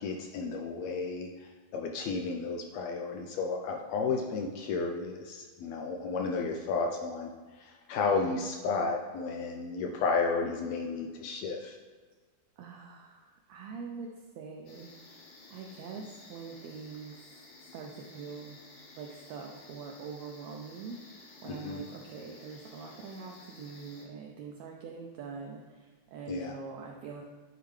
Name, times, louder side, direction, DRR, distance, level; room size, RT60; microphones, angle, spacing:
voice 1, 0.0-7.3 7.6-11.8 21.5-21.8 26.3-26.5, left 4 dB, 80° left, 2 dB, 1.5 m, -32 dB
voice 2, 12.6-14.1 14.4-15.2 15.5-17.3 17.7-18.6 19.0-27.2, right 5 dB, 75° right, 0 dB, 1.7 m, -44 dB
sound 1, 14.7-24.1, left 3 dB, 60° left, 2.1 m, -54 dB
10.0 x 4.7 x 3.2 m, 1.4 s
omnidirectional pair, 3.5 m